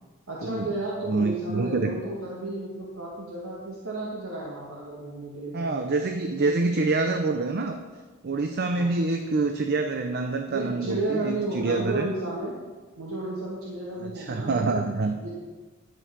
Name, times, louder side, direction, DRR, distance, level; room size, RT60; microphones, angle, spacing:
voice 1, 0.3-5.8 6.3-6.6 8.7-8.9 10.5-12.6 13.0-15.3, right 2 dB, 85° right, -4 dB, 1.9 m, -33 dB
voice 2, 1.1-2.0 5.5-7.8 8.2-12.1 14.0-15.1, right 3 dB, 50° right, 6 dB, 0.6 m, -26 dB
11.0 x 5.5 x 6.9 m, 1.3 s
head